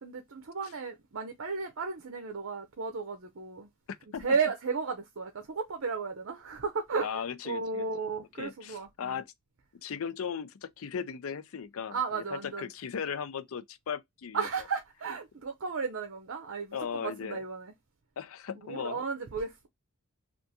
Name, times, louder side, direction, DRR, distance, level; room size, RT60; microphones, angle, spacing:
voice 1, 0.0-3.7 4.2-9.1 11.9-12.6 14.3-17.7 18.6-19.7, right 5 dB, 65° right, 0.6 m, -34 dB
voice 2, 3.9-4.2 7.0-7.9 8.4-9.3 9.8-14.5 16.7-17.4 18.2-19.0, left 7 dB, 70° left, 0.5 m, -37 dB
3.4 x 2.5 x 2.7 m
head